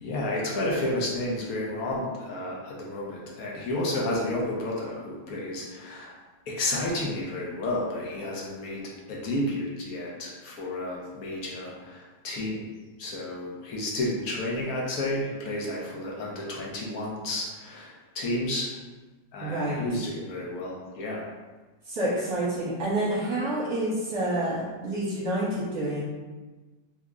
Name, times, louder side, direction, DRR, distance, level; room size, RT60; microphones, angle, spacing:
voice 1, 0.0-6.1 6.5-12.7 13.0-18.7 19.3-21.2, left 1 dB, 65° left, -3 dB, 1.0 m, -31 dB
voice 2, 19.4-19.8 21.9-26.0, right 1 dB, 60° right, -9 dB, 1.3 m, -28 dB
3.5 x 2.0 x 3.6 m, 1.3 s
omnidirectional pair, 2.0 m